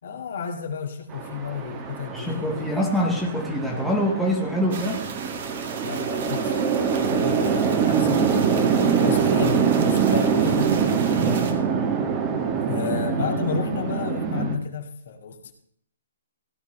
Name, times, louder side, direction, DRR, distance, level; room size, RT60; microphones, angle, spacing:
voice 1, 0.0-2.9 5.8-8.7 9.0-10.7 12.6-15.5, left 6 dB, 65° left, 2 dB, 2.1 m, -32 dB
Chatter / Traffic noise roadway noise / Train, 1.1-14.6, right 6 dB, 25° right, 1.4 m, -24 dB
voice 2, 2.1-5.0 11.1-11.6, equal, ahead, -3 dB, 1.8 m, -25 dB
sound 1, 4.7-11.5, right 5 dB, 55° right, 2.0 m, -36 dB
17.0 x 9.6 x 3.3 m, 0.64 s
hypercardioid pair, 150°, 0 cm